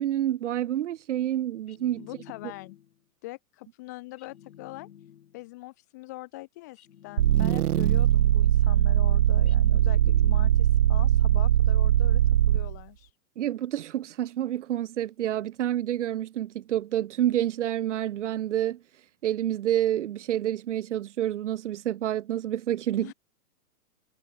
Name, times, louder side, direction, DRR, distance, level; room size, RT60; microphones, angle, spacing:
voice 1, 0.0-2.1 13.4-18.8 19.2-23.1, right 12 dB, 50° right, 1.0 m, -28 dB
sound 1, 1.7-3.0 4.2-5.5 6.8-8.1 9.5-10.8, left 10 dB, 70° left, 3.7 m, -51 dB
voice 2, 2.0-2.8 3.2-4.9 5.3-13.1 22.9-23.1, left 21 dB, 10° left, 0.6 m, -43 dB
sound 2, 7.2-12.8, right 12 dB, 85° right, 0.9 m, -21 dB
hypercardioid pair, 175°, 45 cm